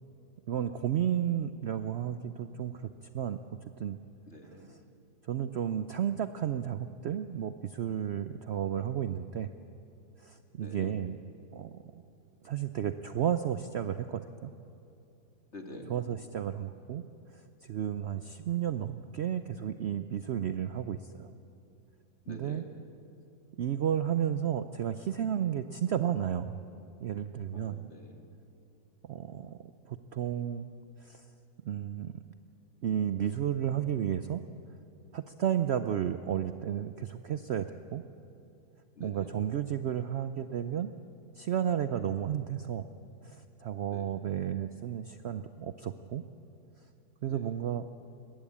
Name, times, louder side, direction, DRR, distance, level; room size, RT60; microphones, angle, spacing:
voice 1, 0.5-3.4 3.8-4.0 4.7-4.8 5.2-9.5 10.2-11.2 11.5-12.0 12.4-14.5 15.9-17.0 17.3-21.3 22.3-22.6 23.6-26.6 27.0-27.9 29.0-29.6 29.9-30.7 31.0-31.2 31.6-32.1 32.8-34.4 35.1-38.0 39.0-40.9 41.4-42.9 43.2-46.2 47.2-47.9, right 9 dB, 85° right, 11 dB, 0.5 m, -32 dB
voice 2, 4.3-4.8 10.6-10.9 15.5-15.9 22.3-22.7 27.5-28.3 39.0-39.3 43.9-44.2 47.3-47.4, left 2 dB, 40° left, 3 dB, 2.2 m, -47 dB
20.5 x 15.5 x 8.6 m, 2.8 s
omnidirectional pair, 1.8 m